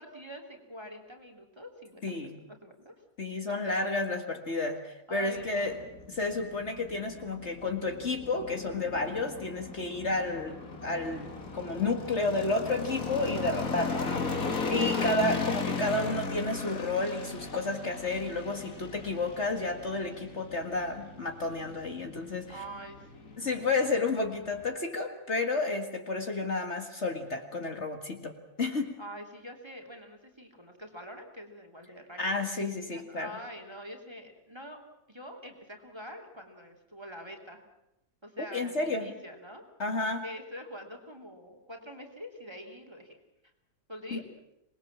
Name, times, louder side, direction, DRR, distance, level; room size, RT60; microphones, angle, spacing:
voice 1, 0.0-2.9 3.5-3.9 5.1-5.8 14.7-15.2 22.5-23.6 29.0-32.3 32.9-34.8 35.1-37.6 38.2-39.6 40.2-43.2 43.9-44.2, equal, 15° right, 2 dB, 3.1 m, -45 dB
voice 2, 2.0-2.4 3.2-5.8 6.1-10.6 10.8-22.5 23.4-29.0 32.2-33.4 38.5-39.1 39.8-40.2 44.1-44.2, left 3 dB, 45° left, 4 dB, 2.1 m, -31 dB
sound 1, 5.4-24.7, left 4 dB, 60° left, 2.6 m, -37 dB
26.5 x 20.5 x 7.4 m, 0.88 s
omnidirectional pair, 1.6 m